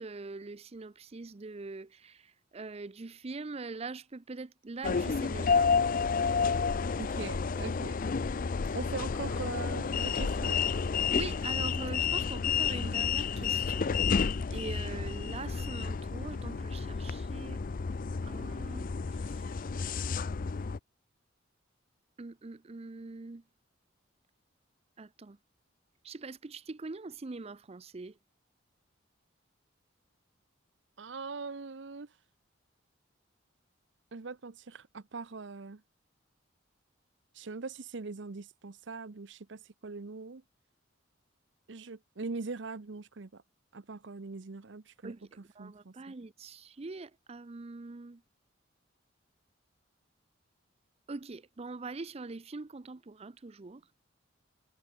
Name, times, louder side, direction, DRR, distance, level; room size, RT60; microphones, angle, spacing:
voice 1, 0.0-5.8 11.1-17.6 18.2-19.7 22.2-23.4 25.0-25.4 26.0-28.2 45.0-48.2 51.1-53.8, right 3 dB, 30° right, 0.5 m, -43 dB
sound 1, 4.8-20.8, left 5 dB, 45° left, 0.5 m, -31 dB
voice 2, 7.0-8.0 8.7-10.6 31.0-32.1 34.1-35.8 37.3-40.4 41.7-43.4 43.7-45.9, right 4 dB, 65° right, 0.8 m, -41 dB
head